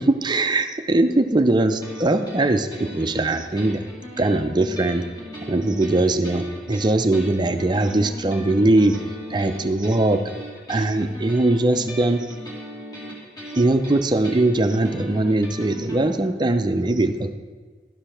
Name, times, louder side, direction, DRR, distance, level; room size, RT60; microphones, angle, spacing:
voice 1, 0.0-3.8 4.2-5.0 5.5-9.0 9.3-10.2 10.7-12.3 13.5-17.3, right 2 dB, 25° right, 8 dB, 0.5 m, -21 dB
sound 1, 1.8-16.1, equal, 20° left, 2.1 m, -38 dB
12.0 x 5.0 x 5.8 m, 1.4 s
head